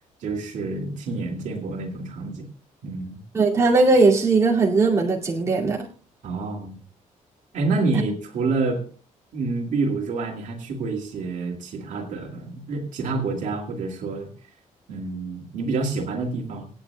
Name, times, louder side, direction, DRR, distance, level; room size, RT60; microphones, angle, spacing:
voice 1, 0.2-2.5 2.8-3.2 6.2-6.8 7.5-8.9 9.3-14.3 14.9-16.7, right 3 dB, 65° right, 2 dB, 2.4 m, -28 dB
voice 2, 3.3-5.9, right 3 dB, 20° right, -3 dB, 2.3 m, -19 dB
26.5 x 9.0 x 2.2 m, 0.39 s
cardioid pair, 170°, 14 cm